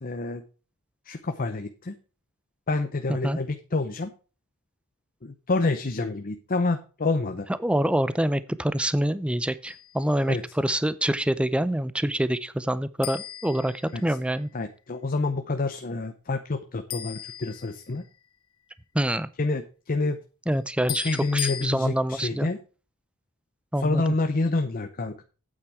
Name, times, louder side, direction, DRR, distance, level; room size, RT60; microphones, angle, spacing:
voice 1, 0.0-0.4 1.0-1.9 2.7-4.1 5.2-7.5 10.3-10.4 13.9-14.0 14.5-18.0 19.4-20.2 21.0-22.6 23.8-25.2, left 3 dB, 40° left, 7 dB, 0.7 m, -28 dB
voice 2, 7.6-14.5 18.9-19.3 20.5-22.5 23.7-24.0, right 1 dB, 5° right, 15 dB, 0.4 m, -26 dB
sound 1, 9.6-10.1 13.0-14.4 16.9-18.2 20.9-21.7, left 12 dB, 65° left, 1.2 m, -37 dB
8.8 x 8.4 x 4.6 m, 0.36 s
head